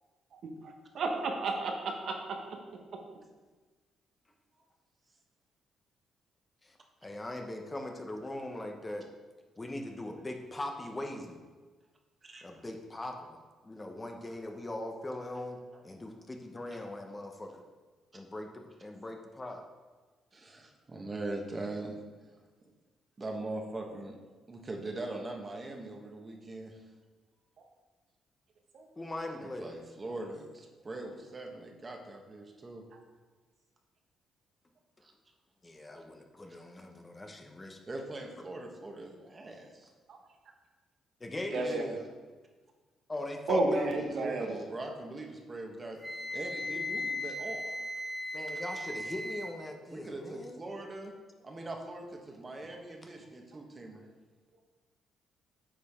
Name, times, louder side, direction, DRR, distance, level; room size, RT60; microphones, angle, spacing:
voice 1, 0.3-2.1 2.7-2.8 28.7-28.9 40.1-40.2 41.5-41.8 43.5-44.5, right 2 dB, 65° right, 2 dB, 1.0 m, -32 dB
voice 2, 6.6-9.1 9.6-11.4 12.4-13.4 13.6-17.6 18.1-19.6 29.0-29.7 35.6-37.8 41.2-41.8 43.1-43.9 48.3-50.6, left 1 dB, 20° left, 3 dB, 0.9 m, -40 dB
voice 3, 20.3-22.0 23.2-24.1 24.5-26.8 29.6-32.8 35.0-35.1 37.9-39.9 41.5-42.0 43.8-46.0 46.3-47.7 49.9-51.1 51.4-54.0, right 2 dB, 30° right, 2 dB, 1.2 m, -41 dB
Wind instrument woodwind instrument, 46.0-49.5, left 1 dB, ahead, 1.3 m, -37 dB
8.8 x 5.0 x 3.6 m, 1.3 s
cardioid pair, 90°, 0 cm